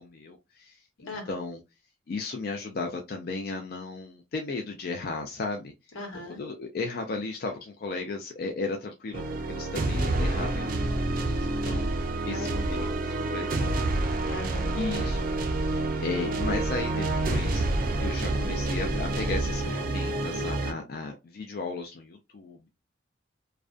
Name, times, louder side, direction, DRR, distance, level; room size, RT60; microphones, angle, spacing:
voice 1, 0.0-1.6 2.1-5.7 6.3-11.8 12.3-13.9 14.7-15.4 15.7-17.7 18.0-22.7, left 3 dB, 50° left, 0.4 m, -35 dB
voice 2, 1.0-1.3 5.9-6.4 12.3-13.3 14.3-14.8, left 2 dB, 90° left, 1.1 m, -40 dB
sound 1, 9.1-20.7, right 2 dB, 45° right, 0.4 m, -28 dB
2.4 x 2.1 x 2.4 m
head